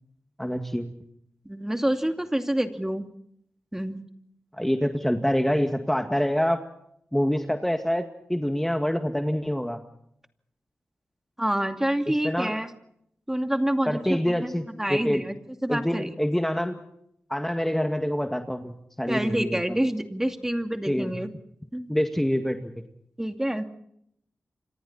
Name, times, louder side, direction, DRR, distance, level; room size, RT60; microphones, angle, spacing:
voice 1, 0.4-0.9 4.5-6.6 7.1-9.8 12.2-12.6 13.9-15.2 15.7-16.8 17.3-19.8 20.9-21.2 21.9-22.8, equal, 5° left, 5 dB, 1.9 m, -26 dB
voice 2, 1.4-3.1 3.7-4.0 11.4-12.7 13.3-14.5 14.8-15.3 15.6-16.1 19.1-21.3 21.7-21.9 23.2-23.7, right 1 dB, 10° right, 6 dB, 2.5 m, -27 dB
29.0 x 25.5 x 4.2 m, 0.73 s
cardioid pair, 65°, 4 cm